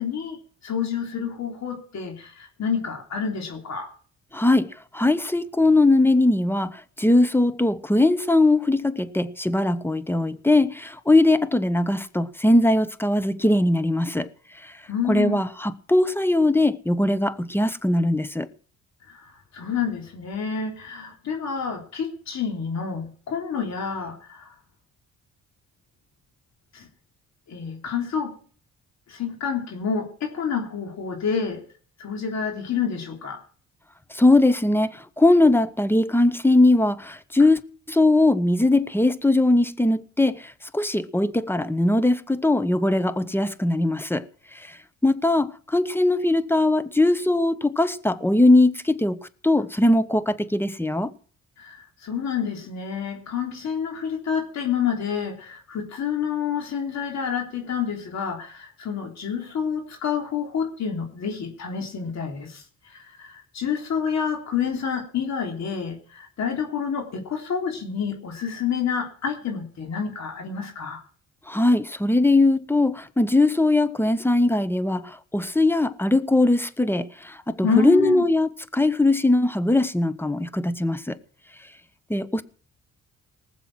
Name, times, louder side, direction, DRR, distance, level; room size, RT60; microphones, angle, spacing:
voice 1, 0.0-3.9 14.9-15.4 19.1-24.6 26.7-26.9 27.5-28.4 29.1-31.7 32.0-33.4 51.6-71.0 77.6-78.2, left 7 dB, 60° left, 3.5 m, -28 dB
voice 2, 4.3-4.7 4.9-14.3 14.6-14.7 15.1-18.5 34.1-37.6 37.9-44.3 44.5-44.8 45.0-49.2 49.4-51.1 71.5-81.2 82.1-82.4, left 2 dB, 5° left, 1.0 m, -20 dB
19.0 x 7.5 x 6.1 m
cardioid pair, 90°, 30 cm